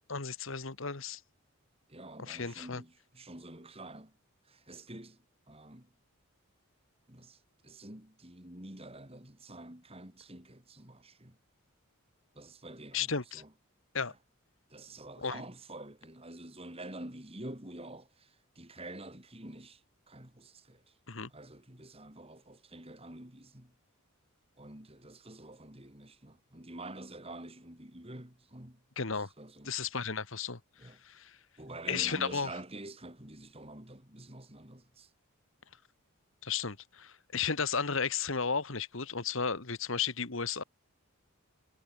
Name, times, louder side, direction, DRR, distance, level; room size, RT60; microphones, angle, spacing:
voice 1, 0.1-1.2 2.2-2.8 12.9-13.4 13.9-14.1 15.2-15.4 21.1-21.3 29.0-29.3 29.6-30.6 31.0-31.4 31.9-32.5 36.4-40.6, left 6 dB, 60° left, 1.6 m, -34 dB
voice 2, 1.9-4.1 4.5-5.2 5.5-5.9 7.1-7.4 7.6-11.4 12.4-13.5 14.0-14.2 14.7-19.8 20.1-20.8 21.3-23.7 24.6-28.8 29.1-29.7 30.8-31.0 31.6-35.1, right 1 dB, 25° right, 3.6 m, -48 dB
head